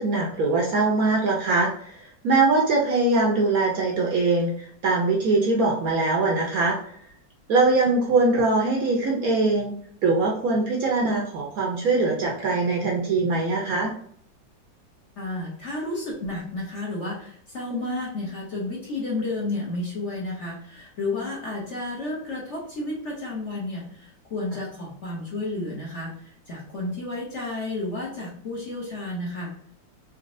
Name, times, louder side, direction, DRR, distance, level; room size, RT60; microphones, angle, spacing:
voice 1, 0.0-6.8 7.5-9.7 10.0-13.9, right 3 dB, 65° right, -1 dB, 1.0 m, -22 dB
voice 2, 15.2-29.7, left 2 dB, 45° left, -4 dB, 1.1 m, -32 dB
4.2 x 2.9 x 2.6 m, 0.63 s
omnidirectional pair, 2.0 m